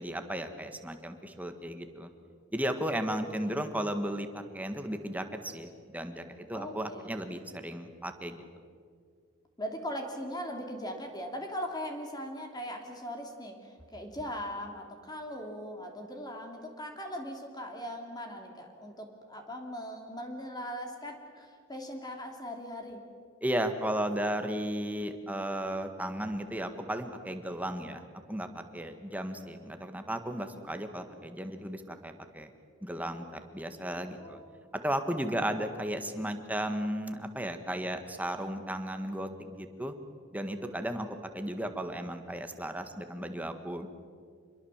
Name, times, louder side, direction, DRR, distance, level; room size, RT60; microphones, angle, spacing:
voice 1, 0.0-2.1 2.5-8.4 23.4-32.5 32.8-34.4 34.8-40.0 40.3-43.9, right 1 dB, 10° right, 7 dB, 1.6 m, -35 dB
voice 2, 6.5-7.1 9.6-23.0 34.2-34.6, equal, 20° left, 3 dB, 2.8 m, -40 dB
26.5 x 22.0 x 7.4 m, 2.1 s
head